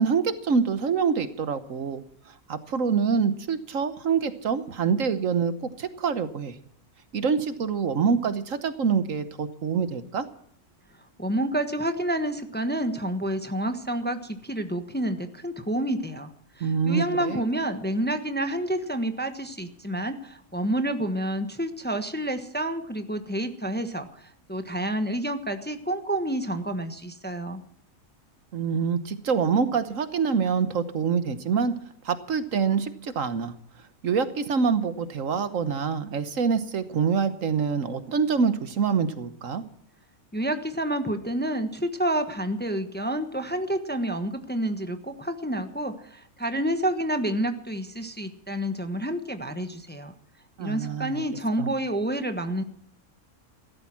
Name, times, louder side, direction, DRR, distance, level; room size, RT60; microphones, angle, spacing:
voice 1, 0.0-2.0 2.5-5.5 5.8-6.5 7.1-10.2 16.6-17.5 28.5-31.7 32.0-33.5 34.0-39.6 50.6-51.2 51.6-51.7, right 6 dB, 65° right, 11 dB, 1.4 m, -25 dB
voice 2, 11.2-16.3 16.6-27.6 40.3-50.1 50.6-52.6, right 1 dB, 10° left, 8 dB, 1.1 m, -29 dB
16.0 x 13.0 x 6.0 m, 0.67 s
omnidirectional pair, 1.5 m